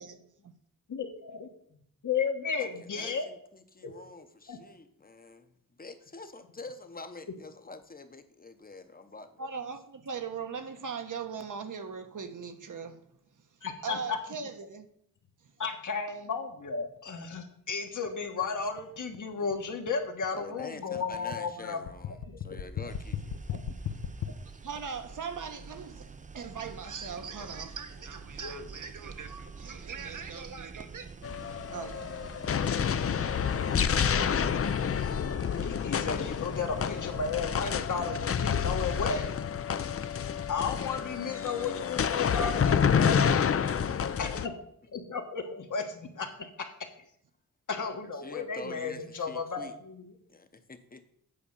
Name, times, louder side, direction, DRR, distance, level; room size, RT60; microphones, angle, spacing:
voice 1, 0.9-3.3 3.8-3.9 4.5-4.6 13.6-14.2 15.6-21.8 22.3-22.9 23.5-23.7 28.4-28.6 35.6-39.3 40.5-43.6 44.2-44.5 44.9-46.7 47.7-50.1, left 5 dB, 60° left, 1.4 m, -34 dB
voice 2, 2.6-5.5 5.8-9.4 19.4-19.5 20.3-23.4 48.2-49.8 50.3-51.0, left 3 dB, 25° left, 0.9 m, -46 dB
voice 3, 9.4-13.0 13.8-14.9 24.6-31.1 31.4-32.1 32.6-33.3, right 6 dB, 65° right, 1.1 m, -40 dB
sound 1, 17.0-24.3, left 7 dB, 85° left, 1.0 m, -38 dB
sound 2, 22.9-38.0, right 5 dB, 25° right, 0.5 m, -48 dB
sound 3, 31.2-44.5, left 7 dB, 45° left, 0.5 m, -29 dB
8.7 x 4.9 x 7.1 m
wide cardioid pair, 105°, 34 cm